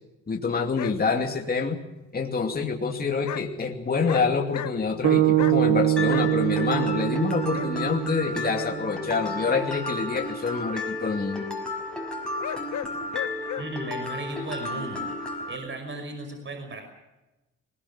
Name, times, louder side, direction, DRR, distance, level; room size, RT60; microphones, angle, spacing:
voice 1, 0.3-1.8 2.1-11.5, left 5 dB, 30° left, 2 dB, 2.6 m, -27 dB
sound 1, 0.7-1.0 3.2-3.4 3.9-4.3 4.5-5.0 5.4-5.6 6.1-6.3 7.5-7.7 8.5-8.7 12.4-13.6, left 11 dB, 70° left, 1.0 m, -34 dB
sound 2, 5.0-9.3, right 13 dB, 70° right, 2.0 m, -24 dB
Mallet percussion, 6.0-15.5, left 2 dB, 5° left, 5.8 m, -33 dB
voice 2, 13.6-15.1 15.5-16.8, right 2 dB, 40° right, 5 dB, 5.7 m, -35 dB
20.5 x 20.0 x 7.4 m, 1.0 s
cardioid pair, 90°, 30 cm